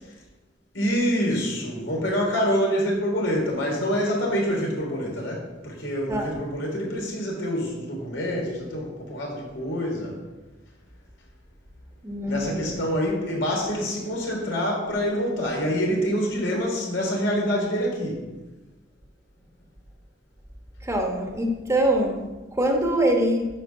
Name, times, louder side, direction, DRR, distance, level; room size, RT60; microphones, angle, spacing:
voice 1, 0.7-10.2 12.3-18.2, equal, 80° left, -2 dB, 3.7 m, -26 dB
voice 2, 12.0-12.8 20.8-23.5, right 1 dB, 15° right, 1 dB, 1.2 m, -24 dB
10.0 x 5.3 x 7.4 m, 1.2 s
head